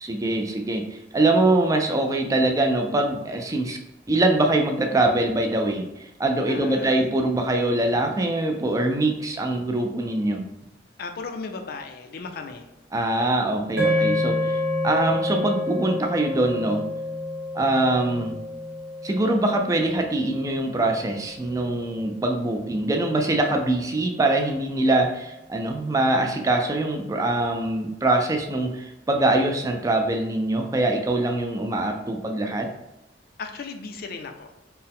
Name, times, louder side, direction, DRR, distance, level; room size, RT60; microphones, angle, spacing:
voice 1, 0.0-3.8 4.1-10.4 12.9-14.6 14.8-16.8 17.5-18.4 19.0-32.7, right 2 dB, 20° right, 4 dB, 0.3 m, -23 dB
voice 2, 6.5-7.1 11.0-12.7 13.9-14.3 33.4-34.5, left 4 dB, 55° left, 5 dB, 0.4 m, -36 dB
sound 1, 13.8-22.1, left 1 dB, 55° right, 1.3 m, -29 dB
4.3 x 2.0 x 3.5 m, 0.92 s
head